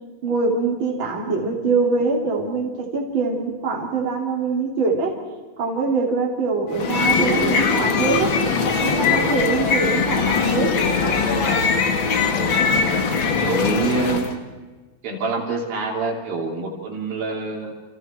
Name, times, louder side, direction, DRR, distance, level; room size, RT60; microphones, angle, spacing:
voice 1, 0.2-5.2 5.6-8.3 8.8-10.7, right 4 dB, 35° right, -1 dB, 3.8 m, -23 dB
sound 1, 6.7-14.3, left 5 dB, 45° left, 1.8 m, -21 dB
voice 2, 13.2-14.3 15.0-17.7, right 3 dB, 80° right, 0 dB, 5.1 m, -26 dB
29.0 x 28.5 x 4.6 m, 1.3 s
omnidirectional pair, 4.1 m